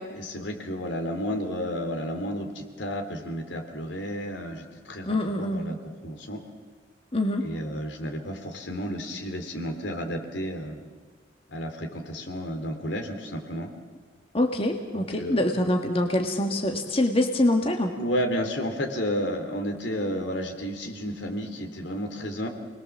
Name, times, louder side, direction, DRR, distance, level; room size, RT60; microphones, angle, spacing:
voice 1, 0.1-5.8 6.0-6.4 7.4-10.8 11.5-13.7 14.9-15.5 18.0-22.5, equal, 80° left, 4 dB, 3.3 m, -32 dB
voice 2, 5.1-5.6 7.1-7.5 14.3-17.9, left 1 dB, 30° left, 3 dB, 1.7 m, -25 dB
29.0 x 21.0 x 7.3 m, 1.5 s
head